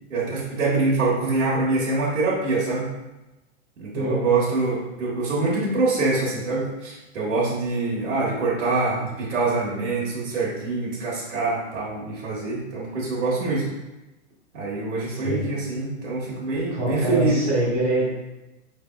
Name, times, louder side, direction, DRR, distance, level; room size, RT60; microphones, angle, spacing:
voice 1, 0.1-2.9 3.8-13.7 14.5-17.4, right 3 dB, 90° right, -5 dB, 1.3 m, -25 dB
voice 2, 3.9-4.5 15.1-15.5 16.7-18.1, right 1 dB, 15° right, -7 dB, 0.7 m, -25 dB
4.9 x 3.4 x 2.3 m, 1.0 s
hypercardioid pair, 160°, 37 cm